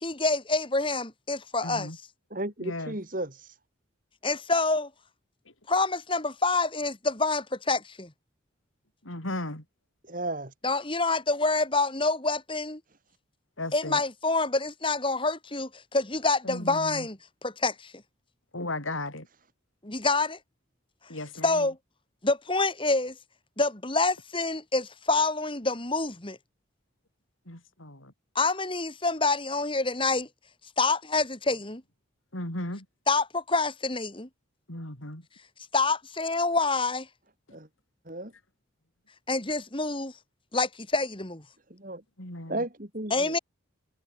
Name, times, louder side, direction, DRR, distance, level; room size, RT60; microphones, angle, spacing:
voice 1, 0.0-1.9 4.2-4.9 5.7-8.1 10.6-12.8 13.7-17.9 19.8-20.4 21.4-21.8 22.2-23.1 23.6-26.4 28.3-30.3 30.8-31.8 33.1-34.3 35.7-37.1 39.3-40.1 40.5-41.4 43.1-43.4, left 3 dB, 25° left, 2.6 m, -27 dB
voice 2, 1.6-2.0 2.6-3.0 9.0-9.6 13.6-14.0 16.5-17.1 18.5-19.3 21.1-21.6 27.5-28.1 32.3-32.8 34.7-35.2 42.2-42.6, left 1 dB, 85° left, 7.9 m, -36 dB
voice 3, 2.3-3.3 10.1-10.5 37.5-37.7 38.1-38.3 41.7-42.0 42.5-43.4, right 1 dB, 45° right, 3.5 m, -34 dB
head